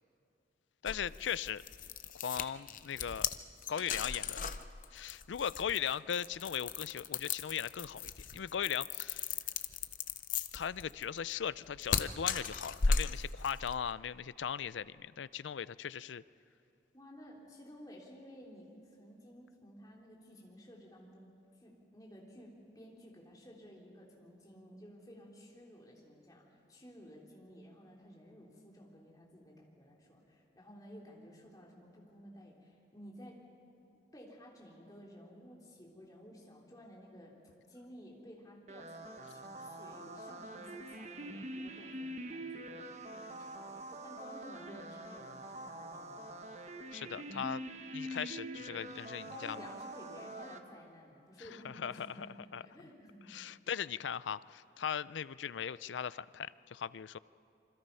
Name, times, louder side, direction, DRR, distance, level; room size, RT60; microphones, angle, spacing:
voice 1, 0.8-1.6 2.1-3.3 3.7-4.4 4.9-9.2 10.5-16.2 46.9-47.6 47.9-49.6 51.6-52.3 52.5-52.6 53.3-57.2, left 8 dB, 85° left, 18 dB, 0.4 m, -38 dB
sound 1, 0.9-13.8, left 5 dB, 45° left, 0.7 m, -37 dB
voice 2, 16.9-21.4 21.6-33.4 34.1-37.4 37.7-46.6 47.0-47.2 49.3-53.6, equal, 20° left, -3 dB, 3.7 m, -54 dB
sound 2, 38.7-50.6, right 1 dB, 35° right, 1.1 m, -45 dB
26.5 x 25.0 x 5.6 m, 2.7 s
head